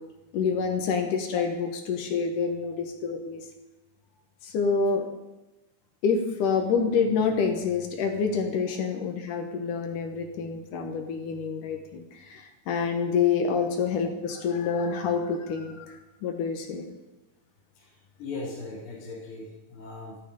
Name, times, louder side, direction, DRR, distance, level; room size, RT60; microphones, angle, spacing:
voice 1, 0.3-3.4 4.4-5.0 6.0-15.9 16.2-16.8, left 5 dB, 65° left, 4 dB, 2.6 m, -27 dB
voice 2, 17.7-20.2, left 3 dB, 40° left, -5 dB, 2.7 m, -39 dB
13.5 x 11.5 x 5.3 m, 1.0 s
omnidirectional pair, 4.5 m